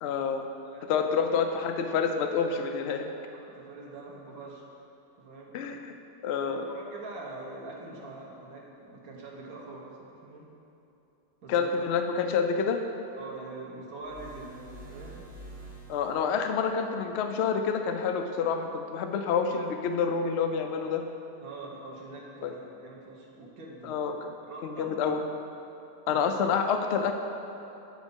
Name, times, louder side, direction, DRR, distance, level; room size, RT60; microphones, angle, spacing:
voice 1, 0.0-0.5 0.9-3.0 5.5-5.9 6.2-6.6 11.5-12.8 15.9-21.1 22.4-22.5 23.8-24.3 24.6-25.2 26.1-27.1, left 6 dB, 85° left, 6 dB, 0.5 m, -28 dB
voice 2, 0.6-1.0 2.5-2.7 3.5-4.6 5.2-5.5 6.5-10.5 11.4-11.7 13.2-15.2 21.4-23.9 24.4-24.9 26.1-26.2, right 2 dB, 65° right, -2 dB, 1.5 m, -44 dB
sound 1, 14.0-16.4, right 1 dB, 45° right, 1.2 m, -46 dB
9.2 x 4.0 x 5.2 m, 3.0 s
omnidirectional pair, 1.7 m